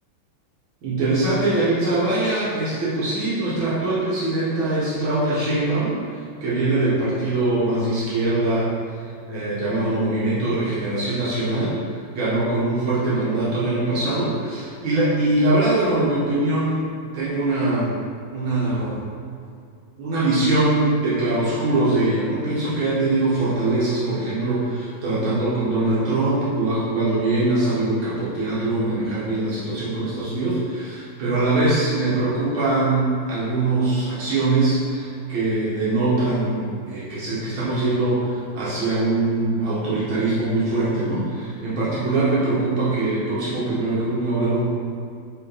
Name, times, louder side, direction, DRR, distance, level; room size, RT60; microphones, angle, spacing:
voice 1, 0.8-17.9 18.3-19.0 20.0-44.6, right 2 dB, 80° right, -9 dB, 2.2 m, -22 dB
Telephone, 25.9-27.9, right 2 dB, 70° left, 0.9 m, -36 dB
8.2 x 3.5 x 4.5 m, 2.3 s
omnidirectional pair, 2.2 m